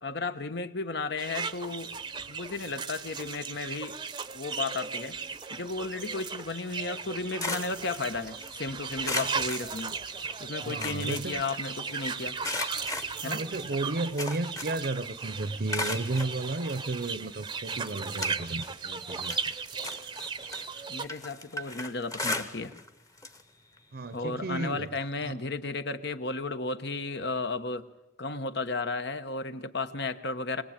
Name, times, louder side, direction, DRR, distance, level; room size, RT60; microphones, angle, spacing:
voice 1, 0.0-1.9 2.3-4.0 4.3-5.2 5.5-10.0 10.4-12.4 13.2-13.5 20.9-22.7 24.1-27.9 28.2-30.6, left 3 dB, 60° left, 10 dB, 1.2 m, -34 dB
sound 1, 1.2-21.1, right 5 dB, 25° right, 0.7 m, -37 dB
sound 2, 7.0-8.6 9.0-10.3 10.6-11.9 12.4-14.9 15.2-16.3 17.0-17.1 17.6-18.8 19.1-22.9 23.2-23.4 23.8-23.9 25.1-25.2, left 2 dB, 20° left, 1.1 m, -37 dB
voice 2, 10.6-11.4 13.2-19.5 23.9-24.9 25.2-25.4, right 2 dB, 55° right, 15 dB, 0.7 m, -33 dB
24.0 x 19.0 x 8.8 m, 0.95 s
head